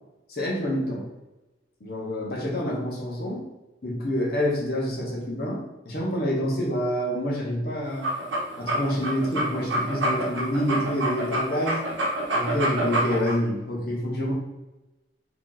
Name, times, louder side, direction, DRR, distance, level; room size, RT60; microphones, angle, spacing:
voice 1, 0.3-1.1 1.8-3.4 3.8-8.1 8.6-11.8 12.3-14.3, equal, 55° left, -2 dB, 0.8 m, -27 dB
sound 1, 7.9-13.3, right 1 dB, 90° right, 0.8 m, -27 dB
2.9 x 2.5 x 3.8 m, 1.1 s
head